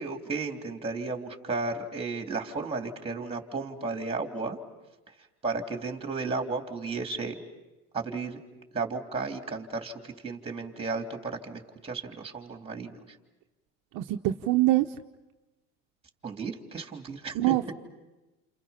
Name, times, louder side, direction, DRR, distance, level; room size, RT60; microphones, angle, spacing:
voice 1, 0.0-4.6 5.4-7.4 7.9-8.4 8.7-13.0 16.2-17.5, right 4 dB, 15° right, 4 dB, 3.1 m, -34 dB
voice 2, 13.9-14.8 17.3-17.7, right 16 dB, 55° right, 3 dB, 1.0 m, -24 dB
29.5 x 28.5 x 5.8 m, 1.1 s
supercardioid pair, 125°, 39 cm